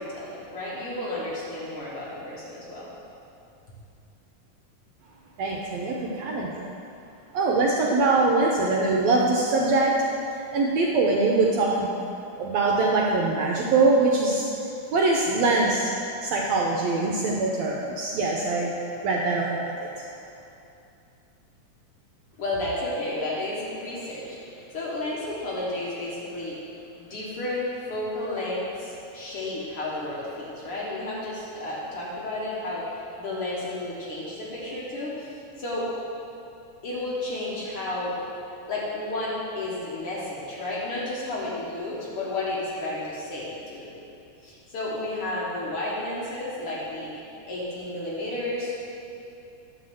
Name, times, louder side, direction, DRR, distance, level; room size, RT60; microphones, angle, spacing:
voice 1, 0.0-2.9 22.4-26.7 27.0-35.9 36.8-38.2 38.7-43.9 44.4-48.8, left 2 dB, 55° left, -6 dB, 1.9 m, -32 dB
voice 2, 5.4-6.6 7.3-10.0 10.3-11.9 12.4-14.5 14.9-15.9 16.2-18.7 19.0-20.1, right 3 dB, 75° right, -2 dB, 1.7 m, -23 dB
10.5 x 4.3 x 7.5 m, 2.7 s
omnidirectional pair, 3.7 m